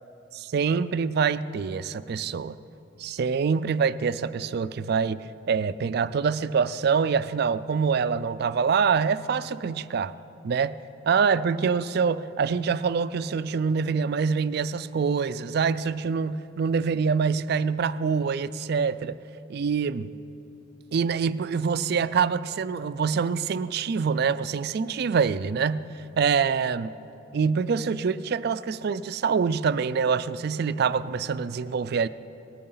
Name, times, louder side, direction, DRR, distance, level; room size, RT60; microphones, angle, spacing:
voice 1, 0.4-2.6 3.0-10.1 10.4-10.8 11.1-19.2 19.5-20.1 20.9-25.8 26.2-26.9 27.3-32.1, right 5 dB, 55° right, 15 dB, 0.4 m, -25 dB
19.0 x 13.5 x 3.9 m, 2.8 s
head